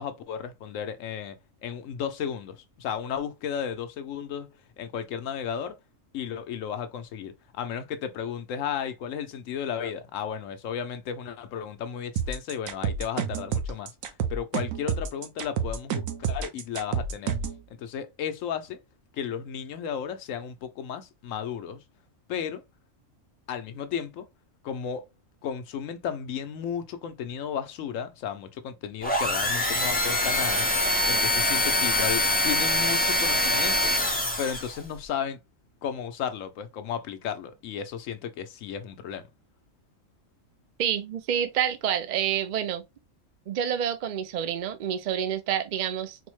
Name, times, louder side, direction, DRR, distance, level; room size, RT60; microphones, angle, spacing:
voice 1, 0.0-1.4 1.6-5.8 6.1-13.9 14.3-17.4 17.7-18.8 19.1-21.8 22.3-22.6 23.5-24.3 24.6-25.0 25.4-30.7 31.0-33.9 34.4-35.4 35.8-39.2, left 8 dB, 75° left, 1.0 m, -34 dB
sound 1, 12.2-17.6, right 7 dB, 80° right, 1.0 m, -29 dB
sound 2, 29.0-34.8, left 1 dB, 10° left, 0.6 m, -24 dB
voice 2, 40.8-42.8 43.5-46.2, right 9 dB, 60° right, 0.5 m, -28 dB
4.2 x 2.1 x 3.0 m
omnidirectional pair, 1.4 m